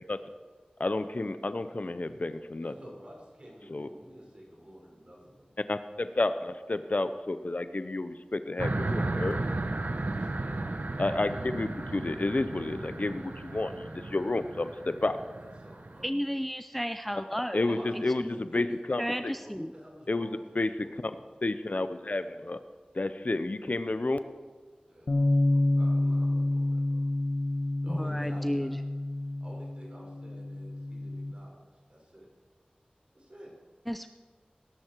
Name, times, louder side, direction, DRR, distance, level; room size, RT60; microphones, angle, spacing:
voice 1, 0.8-2.7 3.7-3.9 5.7-9.4 11.0-15.2 17.5-19.3 20.1-20.7 21.0-21.1 21.4-22.6 23.0-24.2, left 2 dB, 60° left, 11 dB, 0.7 m, -31 dB
voice 2, 2.6-5.4 8.9-10.6 15.3-16.1 17.6-21.2 24.9-26.7 27.8-28.7 29.4-31.5 31.9-32.3 33.1-33.5, equal, 40° right, -3 dB, 5.4 m, -50 dB
sound 1, 8.6-16.1, right 2 dB, 70° right, 1.0 m, -34 dB
voice 3, 16.0-18.4 19.0-19.7 27.9-28.8 33.9-34.1, equal, 5° left, 9 dB, 0.5 m, -33 dB
Bass guitar, 25.1-31.3, left 1 dB, 85° left, 1.4 m, -28 dB
19.0 x 11.5 x 4.6 m, 1.5 s
wide cardioid pair, 45°, 3 cm